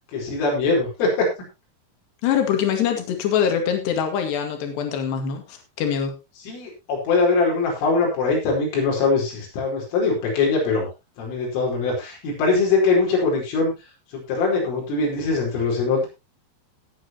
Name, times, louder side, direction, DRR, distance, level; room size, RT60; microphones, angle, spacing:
voice 1, 0.1-1.3 6.4-10.9 11.2-13.7 14.1-16.1, left 4 dB, 90° left, -2 dB, 7.2 m, -22 dB
voice 2, 2.2-6.1, left 8 dB, 65° left, 5 dB, 4.0 m, -23 dB
18.5 x 8.5 x 3.0 m, 0.25 s
omnidirectional pair, 5.6 m